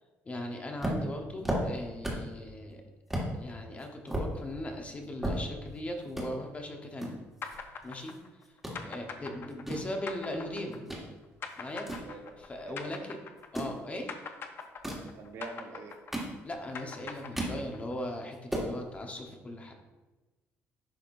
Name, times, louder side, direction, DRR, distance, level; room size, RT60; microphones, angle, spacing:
voice 1, 0.2-2.8 3.4-7.2 7.8-8.2 8.8-10.8 11.6-11.9 12.5-13.2 13.5-14.1 16.4-19.7, left 1 dB, 25° left, 3 dB, 1.0 m, -39 dB
sound 1, 0.8-2.4 2.7-2.8 3.1-3.3 3.8-5.8 6.1-6.3 7.0-8.2 8.4-8.8 9.4-11.1 11.5-12.8 13.4-13.8 14.6-15.1 15.8-16.7 17.0-17.6 18.0-18.1 18.3-18.7, right 1 dB, 5° right, 1.6 m, -35 dB
sound 2, 7.4-13.8 14.1-17.9, left 5 dB, 50° left, 0.6 m, -43 dB
voice 2, 11.9-13.1 15.2-15.9, right 3 dB, 65° right, 4 dB, 0.9 m, -46 dB
10.5 x 3.6 x 2.6 m, 1.2 s
cardioid pair, 100°, 5 cm